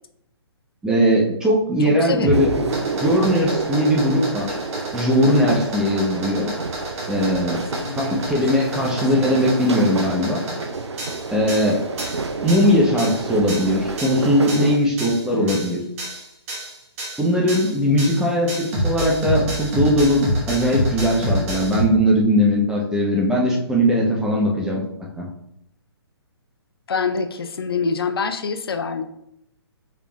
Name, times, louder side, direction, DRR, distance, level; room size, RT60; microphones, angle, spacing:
voice 1, 0.8-2.7 3.0-4.6 4.9-6.5 7.1-7.6 8.0-10.4 11.3-11.8 12.4-15.8 17.2-24.8 25.2-25.3, equal, 5° right, -3 dB, 0.5 m, -19 dB
voice 2, 1.8-2.4 7.5-8.9 15.3-15.6 26.9-29.0, left 5 dB, 60° left, 8 dB, 0.4 m, -27 dB
sound 1, 2.2-21.8, equal, 30° right, 1.1 m, -29 dB
sound 2, 2.3-14.8, right 4 dB, 85° right, 0.4 m, -29 dB
4.7 x 3.3 x 2.3 m, 0.77 s
figure-of-eight pair, 130°, 14 cm